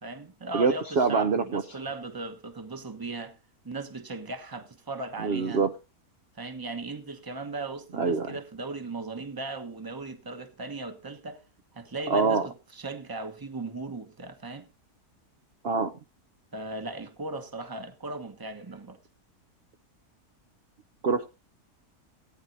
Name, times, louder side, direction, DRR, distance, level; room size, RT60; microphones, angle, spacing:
voice 1, 0.0-3.4 3.6-5.6 6.3-11.4 11.7-14.7 16.5-19.0, right 3 dB, 15° right, 1.0 m, -37 dB
voice 2, 0.5-1.6 5.2-5.7 7.9-8.3 12.1-12.5 15.6-15.9 21.0-21.2, right 4 dB, 50° right, 0.8 m, -25 dB
18.5 x 9.7 x 2.7 m
omnidirectional pair, 1.6 m